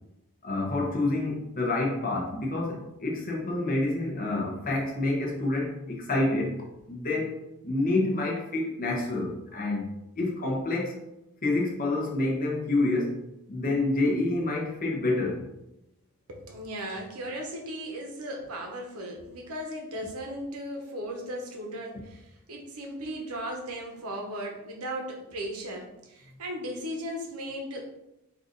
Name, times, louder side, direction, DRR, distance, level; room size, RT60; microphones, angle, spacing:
voice 1, 0.4-6.6 6.9-9.9 10.2-10.9 11.4-13.2 13.5-15.4, left 2 dB, 40° left, -1 dB, 0.9 m, -28 dB
voice 2, 16.3-27.8, equal, 90° right, 1 dB, 1.0 m, -37 dB
4.8 x 2.6 x 3.8 m, 0.88 s
head